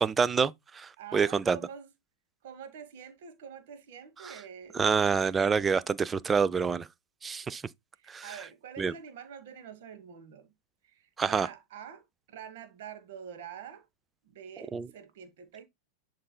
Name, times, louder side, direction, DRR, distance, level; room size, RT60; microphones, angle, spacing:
voice 1, 0.0-1.6 4.7-6.9 7.2-7.6 8.1-8.2 8.8-8.9 11.2-11.5 14.7-14.9, right 5 dB, 15° right, 0.4 m, -27 dB
voice 2, 1.0-1.9 2.4-4.8 7.9-10.5 10.8-13.9 14.2-15.6, right 8 dB, 55° right, 1.2 m, -46 dB
11.0 x 3.9 x 2.2 m
figure-of-eight pair, 90°, 0 cm